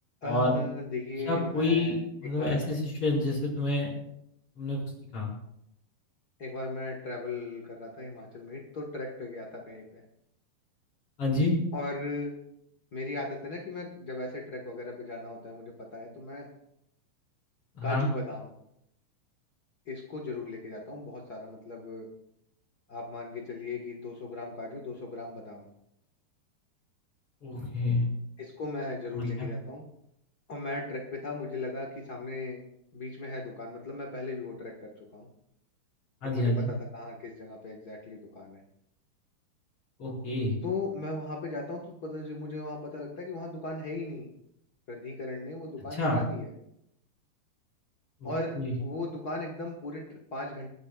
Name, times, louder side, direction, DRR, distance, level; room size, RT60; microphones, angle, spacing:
voice 1, 0.2-2.0 2.2-2.7 6.4-10.0 11.7-12.4 12.9-16.5 17.8-18.5 19.8-22.1 22.9-25.6 28.4-29.8 30.5-32.6 32.9-35.3 36.2-38.6 40.6-44.3 44.9-46.5 48.2-50.7, left 2 dB, 80° left, -1 dB, 0.8 m, -37 dB
voice 2, 1.3-2.0 2.2-3.9 4.6-4.8 5.1-5.3 11.2-11.5 17.8-18.1 27.4-28.0 29.1-29.5 36.2-36.7 40.0-40.5 46.0-46.2 48.2-48.3 48.6-48.7, left 2 dB, 35° left, -4 dB, 5.7 m, -28 dB
28.5 x 10.5 x 2.4 m, 0.78 s
omnidirectional pair, 4.4 m